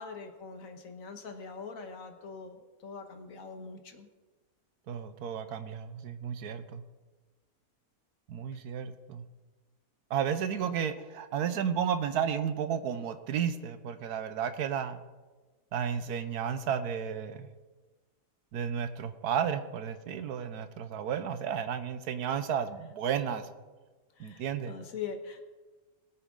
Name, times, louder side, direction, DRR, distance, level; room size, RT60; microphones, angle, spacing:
voice 1, 0.0-4.1 24.1-25.4, left 5 dB, 65° left, 6 dB, 1.5 m, -43 dB
voice 2, 4.9-6.8 8.3-9.2 10.1-15.0 15.7-17.5 18.5-23.4 24.2-24.7, right 8 dB, 85° right, 10 dB, 1.3 m, -32 dB
21.0 x 8.3 x 3.7 m, 1.3 s
omnidirectional pair, 1.6 m